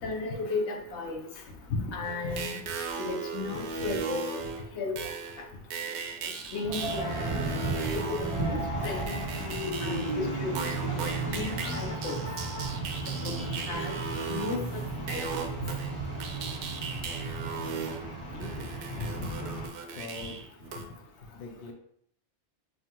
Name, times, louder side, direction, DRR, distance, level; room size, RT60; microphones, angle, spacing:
voice 1, 0.0-1.3 1.7-2.5 3.0-4.4 4.8-5.0 6.5-7.3 7.9-8.2 8.5-8.6 8.8-9.2 9.8-10.5 10.9-11.0 11.3-12.2 13.2-13.3 13.7-13.9 14.3-14.8 15.1-15.2 19.0-19.3, left 3 dB, 80° left, 2 dB, 1.0 m, -34 dB
sound 1, 2.0-10.2 10.6-20.9, right 5 dB, 85° right, 0.9 m, -37 dB
sound 2, 6.6-19.7, right 2 dB, 30° left, 1.0 m, -34 dB
voice 2, 18.3-19.6 19.9-20.5 21.3-21.7, left 3 dB, 60° left, 3 dB, 0.7 m, -43 dB
5.5 x 2.4 x 2.9 m, 0.70 s
omnidirectional pair, 1.1 m